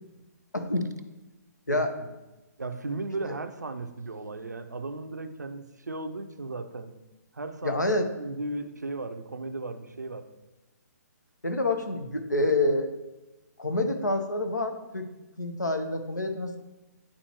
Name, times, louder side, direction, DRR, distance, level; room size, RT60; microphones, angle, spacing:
voice 1, 0.5-0.9 1.7-1.9 7.6-8.1 11.4-12.9 13.6-15.1 15.4-16.6, left 2 dB, 85° left, 6 dB, 0.9 m, -27 dB
voice 2, 1.7-2.1 2.6-6.9 7.3-7.8 8.1-10.3, right 2 dB, 75° right, 8 dB, 0.6 m, -36 dB
10.0 x 4.3 x 2.9 m, 1.1 s
figure-of-eight pair, 130°, 9 cm